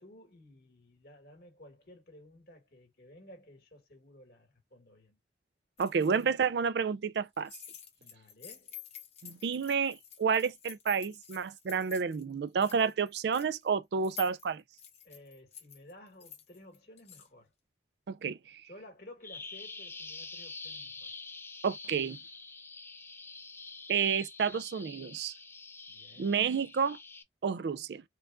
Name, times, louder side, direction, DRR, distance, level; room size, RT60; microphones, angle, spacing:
voice 1, 0.0-5.2 8.0-8.8 15.0-17.5 18.6-21.1 25.9-26.4, left 1 dB, 55° left, 1.9 m, -54 dB
sound 1, 5.8-6.2 7.3-12.2 12.5-13.7 14.0-17.3, left 9 dB, 35° left, 1.0 m, -49 dB
voice 2, 5.8-7.5 9.2-14.6 18.1-18.6 21.6-22.2 23.9-25.3 26.2-27.0 27.4-28.0, right 6 dB, 65° right, 0.4 m, -30 dB
Bird vocalization bird call bird song, 19.2-27.2, left 4 dB, 15° left, 0.4 m, -46 dB
4.5 x 2.5 x 2.3 m
head